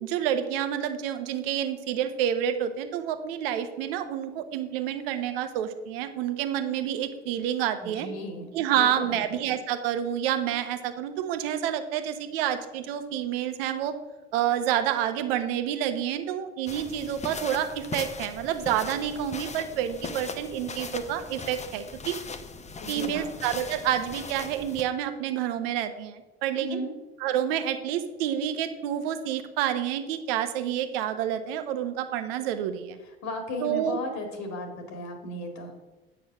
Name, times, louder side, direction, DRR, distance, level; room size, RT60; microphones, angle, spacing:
voice 1, 0.0-8.1 8.5-13.9 14.3-22.1 22.9-26.8 27.2-33.0 33.6-34.0, right 10 dB, 65° right, 9 dB, 1.0 m, -28 dB
voice 2, 7.8-8.5 8.8-9.3 22.8-23.3 26.6-26.9 33.2-35.7, left 1 dB, 55° left, 4 dB, 2.1 m, -35 dB
sound 1, 16.7-24.8, left 4 dB, 20° left, 1.0 m, -39 dB
8.9 x 6.1 x 6.0 m, 1.1 s
figure-of-eight pair, 60°, 32 cm